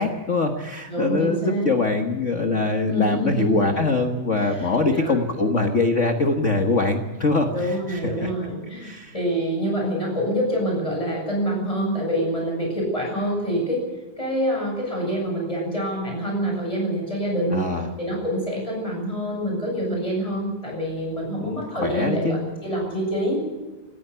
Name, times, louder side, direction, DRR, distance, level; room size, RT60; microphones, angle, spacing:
voice 1, 0.0-8.3 8.8-9.1 17.5-17.9 21.4-22.4, left 3 dB, 50° left, 5 dB, 0.9 m, -23 dB
voice 2, 0.9-1.7 2.9-3.7 4.4-5.2 7.5-13.8 14.2-17.6 18.0-23.4, equal, 10° left, 0 dB, 7.8 m, -26 dB
19.0 x 15.0 x 9.7 m, 1.2 s
omnidirectional pair, 3.6 m